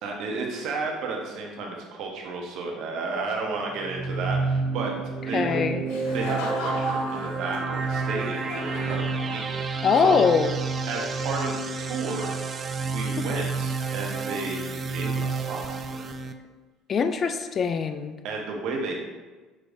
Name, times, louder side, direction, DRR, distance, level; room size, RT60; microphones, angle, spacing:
voice 1, 0.0-4.9 5.2-5.6 6.1-10.2 10.9-11.5 11.8-16.0 18.2-19.0, right 3 dB, 65° right, 0 dB, 0.9 m, -33 dB
sound 1, 3.8-16.3, right 4 dB, 35° right, 0.3 m, -30 dB
voice 2, 5.3-5.8 9.8-10.5 16.9-18.2, left 5 dB, 40° left, 9 dB, 0.3 m, -22 dB
Laughter, 5.9-9.8, left 2 dB, 75° left, 0.8 m, -37 dB
6.2 x 3.1 x 2.6 m, 1.3 s
hypercardioid pair, 70°, 0 cm